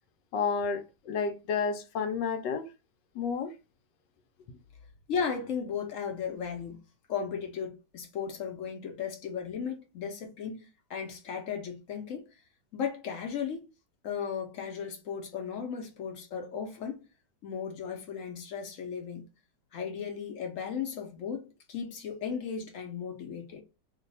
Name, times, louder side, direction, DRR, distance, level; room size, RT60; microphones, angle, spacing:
voice 1, 0.3-2.7 3.1-3.5, left 5 dB, 80° left, 1.2 m, -31 dB
voice 2, 5.1-6.8 7.1-12.2 12.7-13.7 14.0-17.0 17.4-19.3 19.7-23.6, left 7 dB, 60° left, 0.9 m, -36 dB
3.1 x 2.2 x 4.0 m
omnidirectional pair, 1.9 m